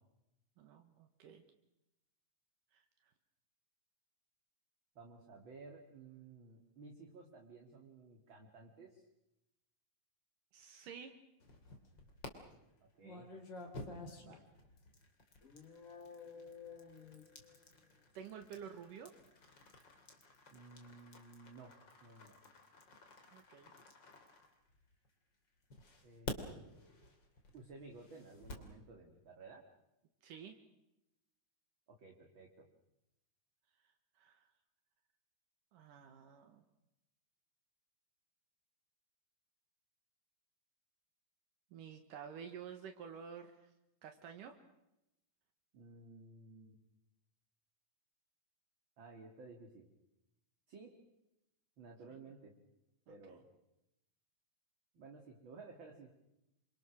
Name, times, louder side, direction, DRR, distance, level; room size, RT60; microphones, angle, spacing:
voice 1, 0.6-1.4 2.7-3.1 10.5-11.2 14.1-14.2 18.1-19.1 23.3-23.7 30.2-30.6 34.2-34.5 35.7-36.6 41.7-43.7 44.0-44.6 53.1-53.4, right 7 dB, 75° right, 5 dB, 3.0 m, -51 dB
voice 2, 4.9-9.0 12.8-13.3 14.2-14.4 20.5-21.7 22.0-22.3 26.0-27.1 27.5-29.6 31.9-32.7 45.7-46.8 49.0-49.9 50.7-50.9 51.8-52.5 53.1-53.4 54.9-56.1, right 3 dB, 40° right, 1 dB, 2.6 m, -55 dB
sound 1, 11.4-12.3 13.0-25.1 25.7-28.7, left 2 dB, 35° left, 3.2 m, -51 dB
sound 2, 15.4-18.0, left 6 dB, 60° left, 0.8 m, -53 dB
28.0 x 24.0 x 6.4 m, 0.88 s
omnidirectional pair, 3.9 m